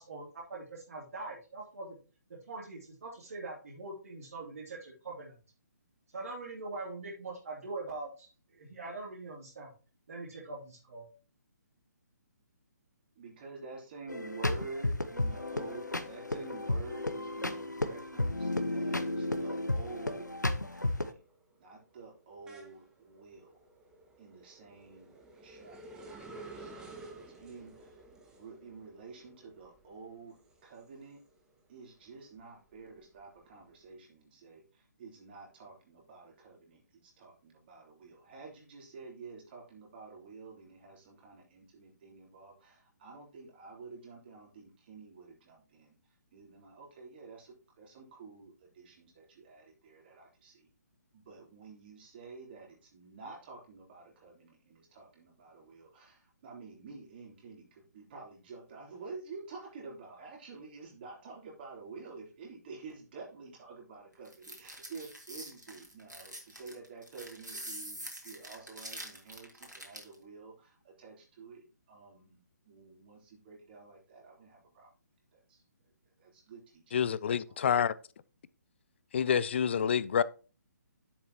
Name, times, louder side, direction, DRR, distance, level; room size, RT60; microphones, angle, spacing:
voice 1, 0.0-2.0 2.5-5.3 6.1-9.7 10.1-11.1, right 3 dB, 50° right, 2.9 m, -43 dB
voice 2, 13.2-20.4 20.7-21.2 21.6-23.6 24.2-25.1 25.4-25.8 26.6-28.0 28.3-31.2 31.7-46.0 46.3-50.7 51.1-74.9 75.3-75.6 76.2-77.1, right 4 dB, 35° right, 3.4 m, -49 dB
sound 1, 14.1-21.1, left 2 dB, 85° left, 1.0 m, -33 dB
sound 2, 20.9-31.6 32.0-33.7, right 2 dB, 5° right, 1.2 m, -53 dB
sound 3, 64.3-70.2, right 1 dB, 90° right, 3.0 m, -45 dB
voice 3, 76.9-77.9 79.1-80.2, left 8 dB, 40° left, 0.5 m, -28 dB
10.0 x 7.5 x 2.9 m
figure-of-eight pair, 135°, 9 cm